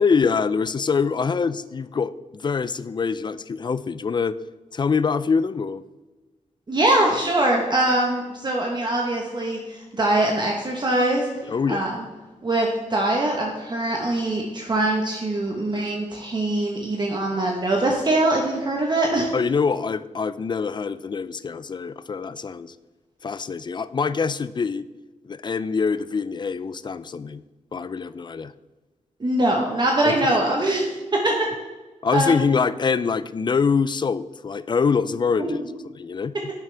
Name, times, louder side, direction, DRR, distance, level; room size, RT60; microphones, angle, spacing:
voice 1, 0.0-4.4 4.7-5.8 11.5-11.8 19.3-22.7 23.2-24.8 25.2-27.4 27.7-28.5 30.0-30.4 32.0-35.6 35.9-36.3, left 5 dB, 35° left, 15 dB, 0.4 m, -24 dB
voice 2, 6.7-11.3 11.7-12.0 12.4-19.3 29.2-31.3 32.1-32.4 35.4-35.7, right 1 dB, 35° right, -1 dB, 1.2 m, -23 dB
10.5 x 7.2 x 3.4 m, 1.2 s
wide cardioid pair, 105°, 13 cm